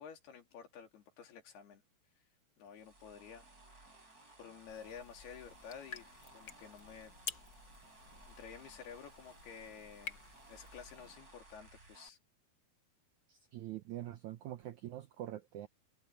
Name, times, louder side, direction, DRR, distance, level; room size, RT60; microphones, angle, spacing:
voice 1, 0.0-1.8 2.6-3.5 4.4-6.1 6.3-7.1 8.3-10.2 10.5-12.2, left 7 dB, 80° left, 4.9 m, -51 dB
sound 1, 2.7-12.1, right 2 dB, 20° right, 6.4 m, -59 dB
sound 2, 4.7-11.2, left 6 dB, 60° left, 1.2 m, -51 dB
voice 2, 13.3-15.7, right 13 dB, 90° right, 1.7 m, -44 dB
omnidirectional pair, 4.6 m